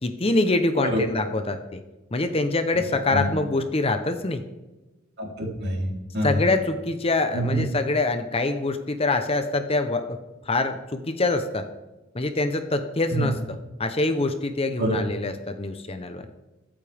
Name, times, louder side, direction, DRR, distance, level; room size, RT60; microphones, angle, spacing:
voice 1, 0.0-1.8 2.1-4.4 6.2-10.2 10.5-11.7 12.1-16.2, left 2 dB, 25° left, 8 dB, 0.7 m, -25 dB
voice 2, 5.2-6.5 7.3-7.6 13.1-13.3 14.8-15.0, right 1 dB, 50° right, -1 dB, 3.4 m, -26 dB
23.0 x 8.7 x 3.5 m, 1.1 s
head